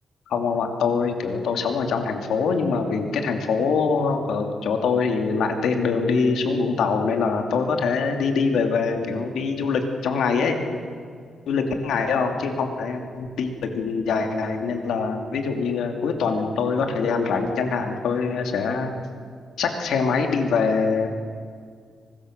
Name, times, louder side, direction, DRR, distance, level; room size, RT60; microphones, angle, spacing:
voice 1, 0.3-10.6 11.5-19.0 19.6-21.1, left 5 dB, 80° left, 4 dB, 2.7 m, -24 dB
24.0 x 21.0 x 6.7 m, 2.1 s
wide cardioid pair, 170°, 0 cm